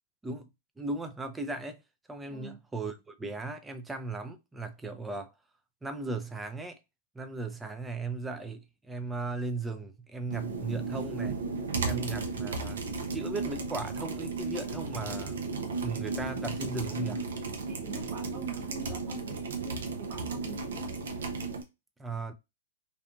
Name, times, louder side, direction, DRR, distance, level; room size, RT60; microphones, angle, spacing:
voice 1, 0.8-1.8 2.1-5.3 5.8-6.8 7.1-11.3 11.8-17.2 22.0-22.3, right 3 dB, 10° right, 0.4 m, -37 dB
sound 1, 10.3-21.6, right 3 dB, 75° right, 0.6 m, -34 dB
voice 2, 17.7-20.9, right 6 dB, 40° right, 0.8 m, -45 dB
2.6 x 2.5 x 2.3 m
hypercardioid pair, 110°, 0 cm